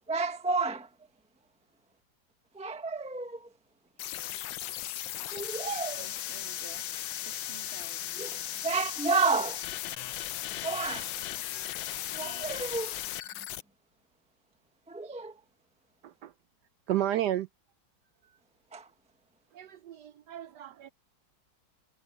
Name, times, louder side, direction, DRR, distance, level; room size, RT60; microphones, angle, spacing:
voice 1, 0.1-0.9 2.5-3.5 5.3-6.1 8.2-9.6 10.6-11.1 12.1-13.0 14.9-15.4 18.7-18.9, right 4 dB, 5° right, 0.5 m, -31 dB
sound 1, 4.0-13.6, left 13 dB, 85° left, 1.4 m, -37 dB
voice 2, 6.0-8.6, right 4 dB, 35° right, 1.9 m, -52 dB
voice 3, 16.9-17.5 19.5-20.9, right 12 dB, 70° right, 1.1 m, -32 dB
omnidirectional pair, 2.0 m